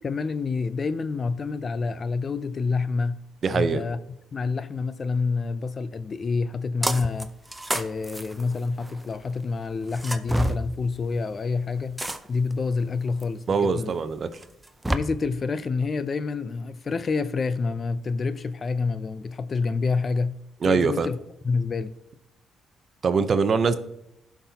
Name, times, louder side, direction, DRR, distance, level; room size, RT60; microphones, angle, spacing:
voice 1, 0.0-3.2 3.5-4.0 4.3-7.3 7.7-12.0 12.3-14.0 14.9-20.4 20.6-21.2 21.4-21.9, left 4 dB, 40° left, 0.5 m, -27 dB
voice 2, 3.4-3.8 13.5-14.3 20.6-21.1 23.0-23.8, right 5 dB, 45° right, 0.7 m, -22 dB
sound 1, 6.8-7.2 7.5-9.1 9.9-10.6 12.0-12.5 13.2-13.3 14.4-15.0, right 1 dB, 10° right, 0.6 m, -28 dB
14.5 x 5.9 x 2.8 m
cardioid pair, 90°, 0 cm